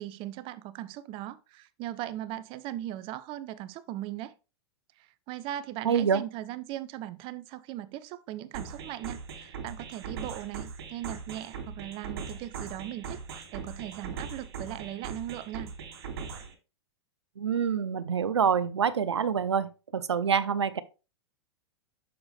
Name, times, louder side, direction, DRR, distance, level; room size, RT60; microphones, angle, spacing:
voice 1, 0.0-4.3 5.0-15.7, right 13 dB, 40° right, 0.6 m, -39 dB
voice 2, 5.8-6.2 17.4-20.8, right 7 dB, 85° right, 0.6 m, -26 dB
sound 1, 8.5-16.5, right 6 dB, 60° right, 2.7 m, -40 dB
7.0 x 6.4 x 3.3 m
hypercardioid pair, 100°, 14 cm